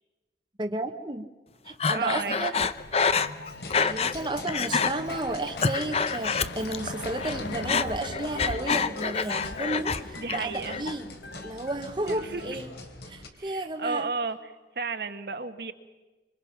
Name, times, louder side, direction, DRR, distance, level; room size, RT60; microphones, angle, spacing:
voice 1, 0.6-1.3 1.6-2.5 3.8-11.1 11.4-12.7 13.0-14.1, right 2 dB, 25° right, 5 dB, 1.0 m, -33 dB
Breathing, 1.8-4.2 4.5-4.9 5.4-6.9 7.2-10.0 10.3-10.9, left 5 dB, 35° left, 0.7 m, -27 dB
voice 2, 1.9-2.6 10.2-10.8 12.1-12.6 13.3-15.7, right 4 dB, 60° right, 8 dB, 1.4 m, -33 dB
sound 1, 2.8-12.6, left 2 dB, 85° left, 1.2 m, -42 dB
sound 2, 3.5-13.3, left 2 dB, 65° left, 3.2 m, -43 dB
26.0 x 25.0 x 5.9 m, 1.2 s
head